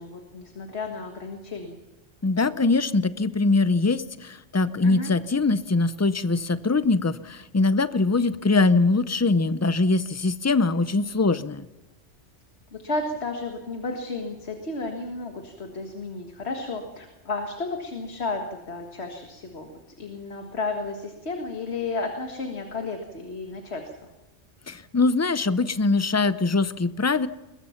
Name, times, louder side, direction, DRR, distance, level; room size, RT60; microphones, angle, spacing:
voice 1, 0.0-1.8 4.8-5.1 12.7-19.7 20.0-23.9, left 3 dB, 65° left, 3 dB, 2.0 m, -32 dB
voice 2, 2.2-11.7 24.7-27.3, left 3 dB, 25° left, 14 dB, 0.4 m, -22 dB
22.0 x 21.0 x 5.8 m, 1.1 s
omnidirectional pair, 1.2 m